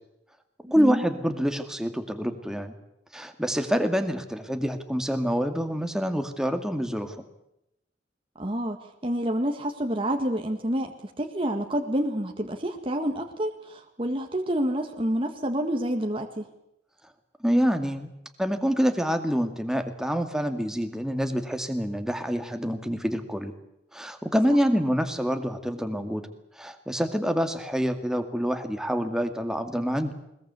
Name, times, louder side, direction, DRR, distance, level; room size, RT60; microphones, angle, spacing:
voice 1, 0.7-2.7 3.1-7.2 17.4-18.1 18.4-23.5 23.9-26.2 26.6-30.1, equal, 5° right, 7 dB, 2.1 m, -26 dB
voice 2, 8.4-8.8 9.0-10.9 11.2-16.4, right 1 dB, 30° right, 3 dB, 1.8 m, -28 dB
21.5 x 21.0 x 8.3 m, 0.82 s
head